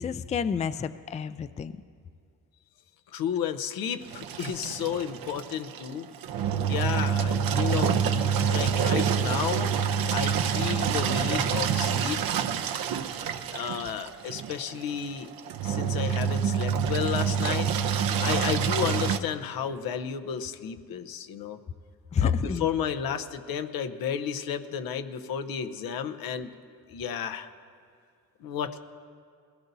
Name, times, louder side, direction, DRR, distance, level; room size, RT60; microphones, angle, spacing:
voice 1, 0.0-1.8 22.1-22.7, left 6 dB, 20° left, 13 dB, 0.3 m, -29 dB
voice 2, 3.1-6.1 6.7-8.0 8.3-9.7 10.1-12.5 13.5-15.3 15.6-17.7 18.2-21.6 22.2-26.5 26.9-27.5 28.4-28.8, left 8 dB, 85° left, 8 dB, 0.8 m, -32 dB
Engine, 4.0-19.2, right 7 dB, 80° right, 0.8 m, -27 dB
20.5 x 17.0 x 2.7 m, 2.2 s
cardioid pair, 90°, 35 cm